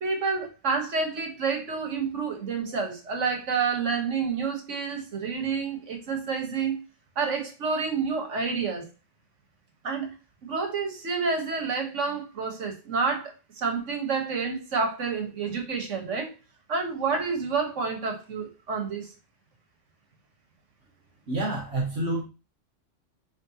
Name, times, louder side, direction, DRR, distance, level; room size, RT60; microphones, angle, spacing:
voice 1, 0.0-6.8 7.2-8.9 9.8-10.1 10.4-16.4 16.7-19.1, right 5 dB, 85° right, 4 dB, 1.7 m, -29 dB
voice 2, 21.3-22.2, right 2 dB, 60° right, -2 dB, 1.6 m, -28 dB
9.6 x 3.4 x 2.9 m, 0.29 s
omnidirectional pair, 1.2 m